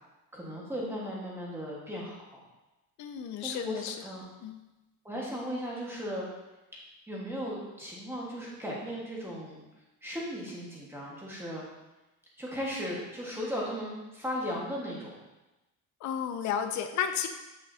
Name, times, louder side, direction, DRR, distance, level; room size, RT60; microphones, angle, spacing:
voice 1, 0.3-2.2 3.4-4.2 5.0-6.3 6.7-6.8 7.1-9.6 10.0-11.7 12.4-15.1, equal, 5° right, -5 dB, 1.4 m, -36 dB
voice 2, 3.0-4.1 4.4-4.6 16.0-17.3, left 8 dB, 55° left, 6 dB, 0.5 m, -32 dB
8.0 x 6.5 x 2.7 m, 1.0 s
cardioid pair, 175°, 36 cm